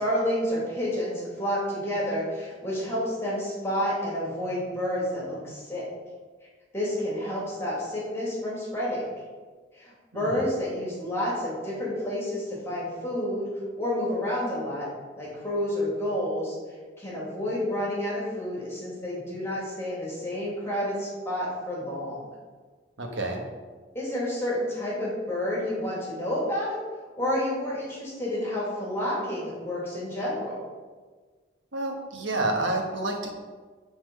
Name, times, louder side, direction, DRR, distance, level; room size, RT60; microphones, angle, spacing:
voice 1, 0.0-5.8 6.7-9.0 9.7-13.5 13.8-14.9 15.2-16.6 17.0-22.2 23.9-26.8 27.2-30.6, left 1 dB, 15° left, -7 dB, 2.5 m, -29 dB
voice 2, 10.1-10.4 23.0-23.4 31.7-33.3, right 2 dB, 80° right, 1 dB, 1.3 m, -29 dB
8.0 x 4.3 x 5.2 m, 1.4 s
head